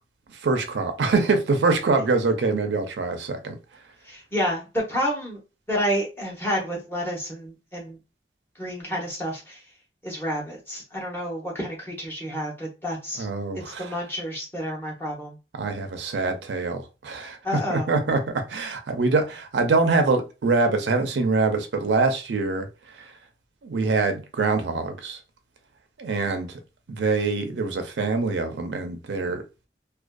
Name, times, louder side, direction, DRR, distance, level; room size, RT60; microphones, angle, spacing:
voice 1, 0.3-3.6 13.2-13.9 15.5-23.1 23.6-25.2 26.0-26.6 26.9-29.4, right 3 dB, 75° right, 0.4 m, -24 dB
voice 2, 4.0-5.4 5.7-8.0 8.6-9.6 10.0-13.3 13.5-15.4 17.4-17.9, equal, 15° left, 0.7 m, -29 dB
2.5 x 2.3 x 2.2 m
head